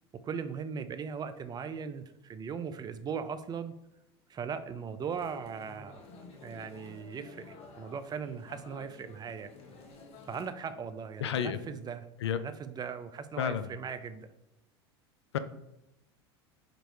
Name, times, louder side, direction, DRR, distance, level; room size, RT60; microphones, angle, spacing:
voice 1, 0.2-3.7 4.3-6.0 6.4-9.5 10.3-14.3, right 6 dB, 30° right, 12 dB, 0.6 m, -39 dB
sound 1, 5.1-10.5, left 3 dB, 45° left, 1.6 m, -52 dB
voice 2, 11.2-11.6 12.2-12.4 13.4-13.7 15.3-15.4, left 8 dB, 85° left, 12 dB, 0.5 m, -30 dB
5.3 x 4.4 x 4.6 m, 0.89 s
hypercardioid pair, 85°, 14 cm